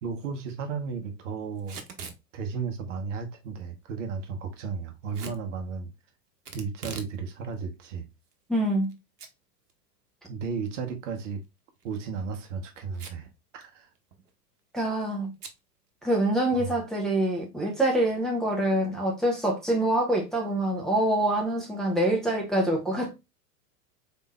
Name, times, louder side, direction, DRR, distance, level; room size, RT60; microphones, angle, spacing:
voice 1, 0.0-1.8 2.3-5.9 6.5-8.1 10.3-11.4 11.8-13.3 13.5-13.9 16.5-16.7, right 5 dB, 50° right, 1.0 m, -34 dB
Packing tape duct tape / Tearing, 1.6-2.2 5.1-5.4 6.4-7.2 7.5-7.6 8.3-8.9 9.2-9.3 9.7-9.8 11.8-12.0 12.9-13.3 13.6-13.7 13.9-14.3 15.4-15.6, right 6 dB, 70° right, 1.0 m, -41 dB
voice 2, 8.5-8.9 14.7-15.3 16.0-23.1, right 1 dB, ahead, 0.9 m, -25 dB
4.1 x 3.6 x 2.2 m
figure-of-eight pair, 95°, 49 cm